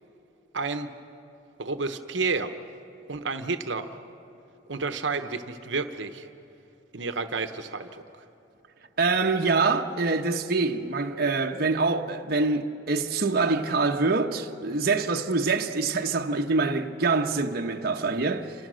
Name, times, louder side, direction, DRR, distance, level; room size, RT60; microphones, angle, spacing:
voice 1, 0.5-0.9 1.6-2.5 3.1-3.9 4.7-6.3 6.9-8.0, right 4 dB, 70° right, 1.0 m, -30 dB
voice 2, 9.0-18.5, right 3 dB, 55° right, 1.1 m, -25 dB
29.5 x 26.5 x 6.4 m
head